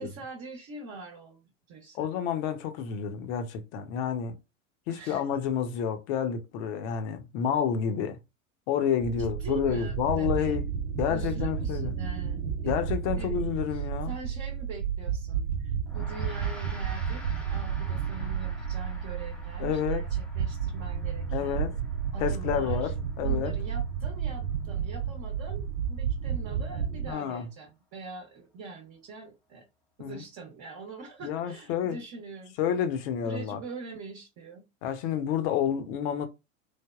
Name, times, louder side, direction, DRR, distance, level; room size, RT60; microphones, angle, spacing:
voice 1, 0.0-2.1 4.9-5.3 9.2-10.6 11.1-12.8 13.1-13.4 13.7-21.6 22.1-22.9 23.2-29.6 30.0-32.6 33.2-34.6, right 3 dB, 40° right, 0.8 m, -43 dB
voice 2, 1.9-4.4 4.9-8.2 8.7-10.6 11.0-11.9 12.6-14.1 19.6-20.0 21.3-21.7 22.2-22.9 23.2-23.5 27.1-27.5 30.0-30.2 31.2-32.0 32.6-33.6 34.8-36.3, left 8 dB, 55° left, 0.8 m, -29 dB
sound 1, 9.0-27.1, right 7 dB, 75° right, 0.6 m, -32 dB
Gong, 15.9-25.4, left 1 dB, 5° left, 0.6 m, -50 dB
3.3 x 2.1 x 2.3 m
hypercardioid pair, 95°, 40 cm